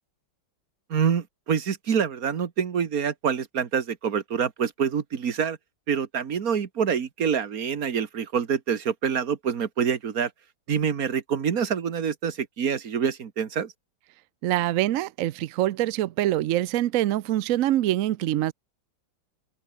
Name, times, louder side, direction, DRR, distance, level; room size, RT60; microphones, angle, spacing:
voice 1, 0.9-5.6 5.9-10.3 10.7-13.7, right 7 dB, 50° right, 1.8 m, -26 dB
voice 2, 14.4-18.5, right 14 dB, 85° right, 0.7 m, -24 dB
open air
omnidirectional pair, 2.1 m